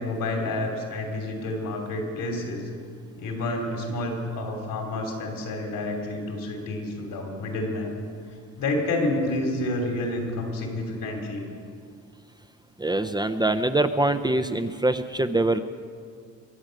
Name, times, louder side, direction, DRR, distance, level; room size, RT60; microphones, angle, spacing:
voice 1, 0.0-2.7 3.2-7.9 8.6-11.4, left 2 dB, 75° left, 2 dB, 3.1 m, -29 dB
voice 2, 12.8-15.6, right 2 dB, 10° right, 9 dB, 0.6 m, -24 dB
23.5 x 8.9 x 6.5 m, 2.1 s
cardioid pair, 90°, 33 cm